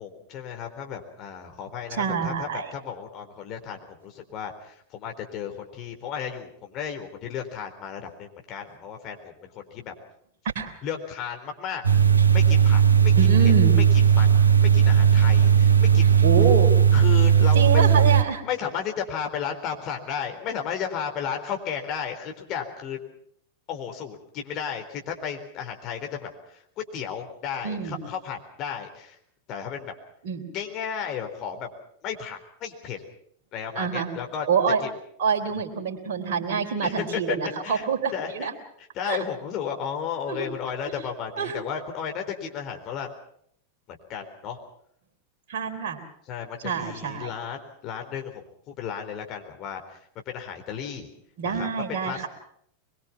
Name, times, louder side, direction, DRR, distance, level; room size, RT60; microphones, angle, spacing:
voice 1, 0.0-9.9 10.8-11.8 12.3-13.1 13.4-13.5 14.1-16.2 16.9-17.8 18.4-23.0 23.7-29.2 29.5-29.9 30.5-31.7 32.0-33.0 33.5-34.5 34.8-34.9 36.8-37.4 37.6-38.5 38.8-43.1 43.9-44.6 46.3-50.0 50.3-51.1 51.4-52.3, left 8 dB, 35° left, 4 dB, 4.1 m, -34 dB
voice 2, 2.0-2.7 10.6-10.8 13.2-13.8 16.2-16.7 17.5-18.4 27.6-28.0 30.2-30.5 33.8-34.1 34.5-34.8 35.2-38.5 39.0-39.2 40.3-40.5 41.4-41.5 45.5-46.0 46.6-47.3 51.4-52.3, right 6 dB, 50° right, 1 dB, 3.6 m, -26 dB
sound 1, 11.8-18.2, right 8 dB, 75° right, 1.3 m, -17 dB
23.5 x 22.5 x 5.8 m, 0.68 s
figure-of-eight pair, 90°, 0 cm